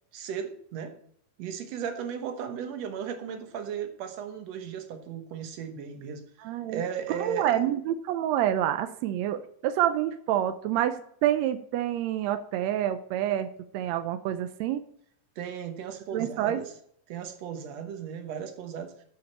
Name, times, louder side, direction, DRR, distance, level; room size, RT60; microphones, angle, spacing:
voice 1, 0.1-1.0 1.4-6.2 6.7-7.6 15.4-16.7 17.1-18.9, right 8 dB, 60° right, 7 dB, 2.0 m, -36 dB
voice 2, 6.4-6.8 7.1-13.5 13.7-14.8 16.1-16.6, right 11 dB, 80° right, 10 dB, 1.5 m, -27 dB
9.4 x 5.0 x 7.2 m, 0.65 s
omnidirectional pair, 3.7 m